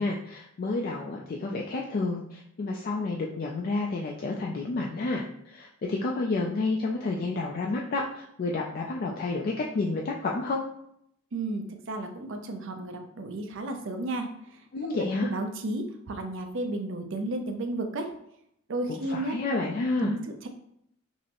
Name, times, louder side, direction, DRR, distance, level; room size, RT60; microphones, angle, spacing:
voice 1, 0.0-10.6 14.7-15.3 18.9-20.1, left 3 dB, 40° left, -1 dB, 0.3 m, -30 dB
voice 2, 11.3-14.3 15.2-18.1 18.7-19.4 20.0-20.5, right 2 dB, 60° right, 4 dB, 0.5 m, -33 dB
5.3 x 2.0 x 2.9 m, 0.74 s
head